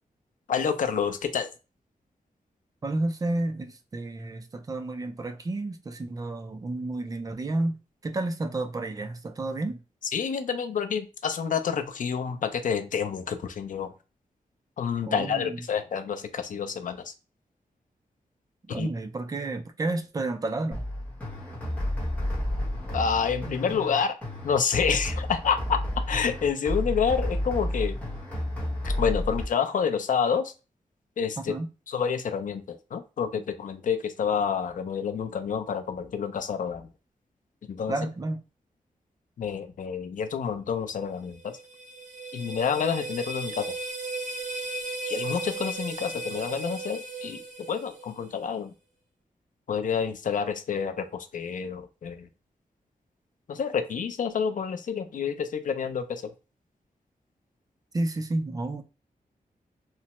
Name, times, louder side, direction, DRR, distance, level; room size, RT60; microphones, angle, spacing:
voice 1, 0.5-1.5 10.1-13.9 14.8-17.1 18.7-18.9 22.9-24.2 24.4-25.8 26.1-28.0 28.8-30.5 31.2-31.5 31.9-36.9 37.7-37.9 39.4-41.5 42.3-43.8 45.0-47.4 47.7-48.7 49.7-52.3 53.5-56.3, left 6 dB, 60° left, 0.4 m, -28 dB
voice 2, 2.8-7.8 8.0-9.8 15.1-15.6 18.7-20.8 31.5-31.7 37.9-38.4 57.9-58.8, right 2 dB, 25° right, 0.3 m, -31 dB
sound 1, 20.7-29.4, left 1 dB, 10° left, 0.9 m, -31 dB
sound 2, 41.3-48.4, right 2 dB, 60° right, 0.9 m, -36 dB
3.1 x 2.0 x 2.9 m
wide cardioid pair, 175°, 15 cm